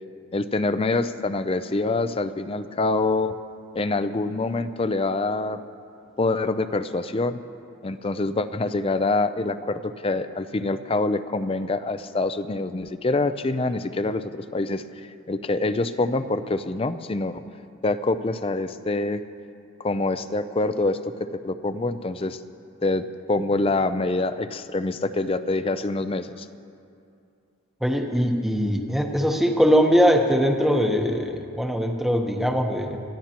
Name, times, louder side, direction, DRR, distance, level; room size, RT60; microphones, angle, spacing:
voice 1, 0.3-3.3 3.7-5.6 6.2-7.4 7.8-14.8 15.3-17.4 17.8-19.2 19.8-22.4 22.8-26.5, left 2 dB, 25° left, 11 dB, 0.4 m, -25 dB
voice 2, 27.8-33.0, equal, ahead, 2 dB, 0.9 m, -21 dB
25.0 x 14.5 x 2.9 m, 2.5 s
head